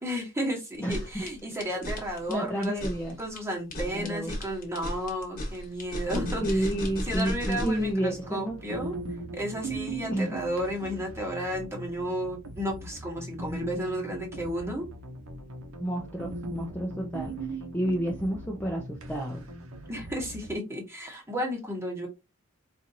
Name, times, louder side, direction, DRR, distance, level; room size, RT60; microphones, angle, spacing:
voice 1, 0.0-2.8 3.2-6.7 7.1-9.0 9.3-14.9 19.9-22.1, equal, 10° right, 1.2 m, -33 dB
sound 1, 0.7-7.9, left 1 dB, 40° left, 1.3 m, -35 dB
voice 2, 0.8-1.3 2.3-3.2 3.7-4.3 6.4-8.6 10.1-10.4 15.8-17.4 17.7-19.5, right 1 dB, 10° left, 0.5 m, -30 dB
sound 2, 6.1-20.5, right 2 dB, 65° right, 0.8 m, -39 dB
4.4 x 2.5 x 2.7 m
head